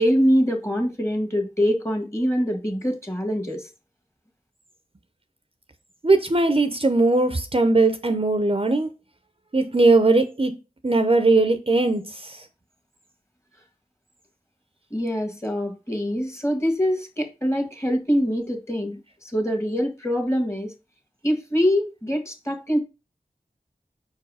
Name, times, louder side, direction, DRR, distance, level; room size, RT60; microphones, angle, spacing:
voice 1, 0.0-3.7 14.9-18.9 19.3-20.7 21.2-22.8, equal, 20° left, 1.9 m, -24 dB
voice 2, 6.0-8.9 9.5-10.5 10.8-12.4, right 2 dB, 40° right, 0.7 m, -19 dB
4.9 x 4.7 x 4.8 m
wide cardioid pair, 45°, 15 cm